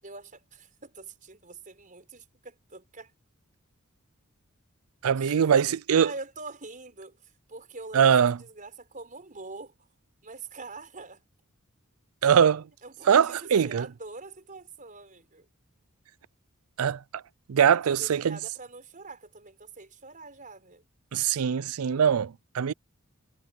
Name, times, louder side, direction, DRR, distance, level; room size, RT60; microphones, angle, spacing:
voice 1, 0.0-3.1 5.2-9.9 10.2-11.2 12.2-12.3 12.8-15.5 17.7-20.8, right 3 dB, 40° right, 5.2 m, -44 dB
voice 2, 5.0-6.1 7.9-8.4 12.2-12.7 13.1-13.9 16.8-17.2 17.5-18.4 21.1-22.7, right 7 dB, 85° right, 0.4 m, -22 dB
head